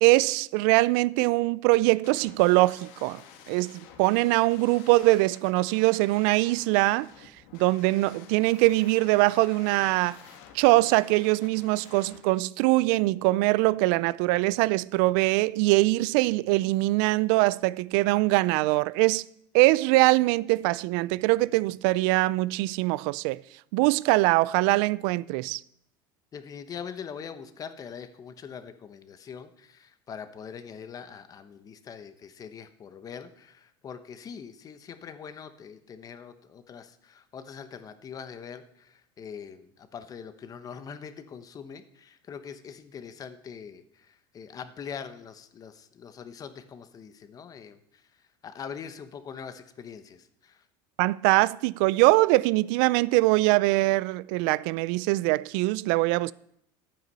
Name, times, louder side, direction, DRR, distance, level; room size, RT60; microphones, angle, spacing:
voice 1, 0.0-3.2 3.5-7.1 7.5-10.2 10.5-19.2 19.5-23.4 23.7-25.6 51.0-56.3, right 21 dB, 70° right, 0.4 m, -22 dB
sound 1, 2.0-12.3, left 8 dB, 70° left, 1.7 m, -51 dB
voice 2, 26.3-47.8 48.4-50.6, left 7 dB, 30° left, 1.0 m, -43 dB
11.0 x 9.0 x 5.5 m
supercardioid pair, 120°, 11 cm